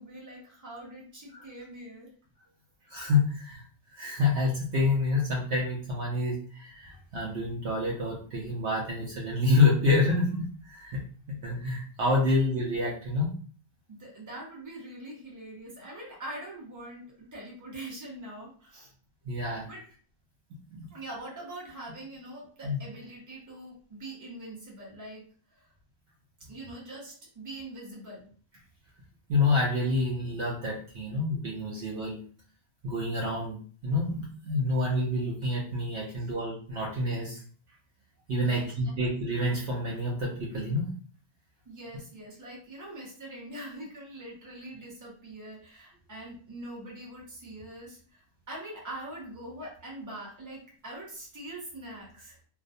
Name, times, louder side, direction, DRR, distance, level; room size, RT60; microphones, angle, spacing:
voice 1, 0.0-2.1 13.9-18.9 19.6-19.8 20.9-25.2 25.5-25.7 26.5-28.3 36.2-36.3 38.4-38.7 41.7-52.4, right 1 dB, 15° right, -4 dB, 0.7 m, -43 dB
voice 2, 2.9-3.6 3.9-11.0 11.3-13.3 19.2-19.7 20.7-20.9 22.6-22.8 29.3-32.2 32.8-37.4 38.3-40.9, left 2 dB, 65° right, -3 dB, 0.8 m, -28 dB
2.4 x 2.1 x 2.5 m, 0.43 s
omnidirectional pair, 1.4 m